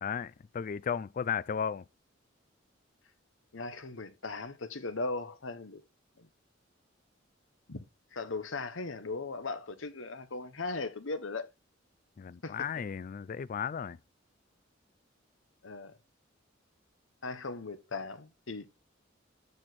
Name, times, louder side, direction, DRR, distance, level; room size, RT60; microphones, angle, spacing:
voice 1, 0.0-1.8 12.2-14.0, left 7 dB, 45° left, 0.3 m, -35 dB
voice 2, 3.5-5.8 6.2-6.3 7.7-7.8 8.1-11.5 12.4-12.6 15.6-16.0 17.2-18.7, left 3 dB, 80° left, 1.1 m, -38 dB
8.9 x 4.4 x 4.1 m
head